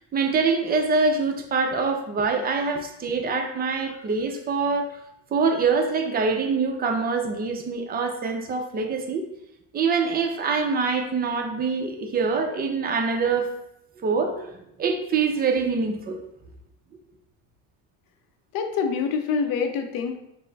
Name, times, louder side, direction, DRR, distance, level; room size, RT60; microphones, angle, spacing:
voice 1, 0.0-5.0 5.3-9.3 9.7-13.5 14.0-14.5 14.8-16.2, right 4 dB, 25° right, 3 dB, 0.6 m, -24 dB
voice 2, 18.5-20.2, left 6 dB, 70° left, 5 dB, 0.7 m, -26 dB
4.5 x 2.1 x 4.0 m, 0.81 s
supercardioid pair, 110°, 36 cm